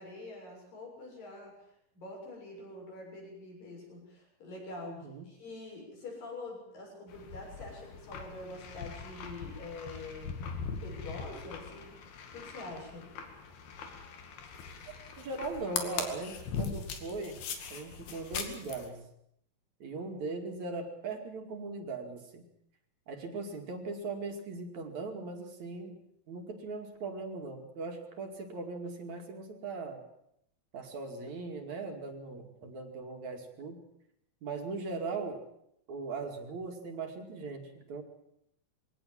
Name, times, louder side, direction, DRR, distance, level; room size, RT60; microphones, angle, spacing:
voice 1, 0.0-1.6 1.9-10.3 10.8-11.9 12.3-13.1, left 2 dB, 65° left, -1 dB, 8.7 m, -45 dB
voice 2, 4.9-5.3 15.2-17.4 17.7-19.1 19.8-22.5 23.1-26.0 26.3-30.0 30.7-33.8 34.4-35.4 35.9-38.0, right 3 dB, 55° right, 4 dB, 3.5 m, -39 dB
sound 1, 7.1-18.9, left 6 dB, 85° left, 4.2 m, -41 dB
22.5 x 18.0 x 7.6 m, 0.75 s
omnidirectional pair, 4.3 m